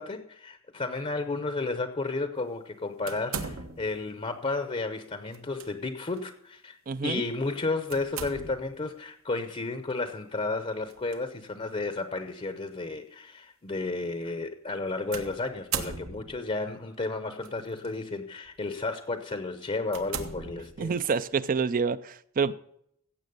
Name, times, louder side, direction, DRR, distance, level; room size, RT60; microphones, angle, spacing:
voice 1, 0.0-6.8 7.0-21.0, left 3 dB, 30° left, 0.7 m, -32 dB
sound 1, 3.1-4.0 5.3-5.7 6.1-6.3 7.9-8.8 10.9-11.2 12.0-12.1 15.1-16.5 17.4-17.9 18.4-18.6 19.2-19.3 19.9-21.1, right 6 dB, 80° right, 1.3 m, -37 dB
voice 2, 6.9-7.2 20.8-22.5, right 5 dB, 40° right, 0.4 m, -27 dB
16.0 x 7.3 x 5.3 m
head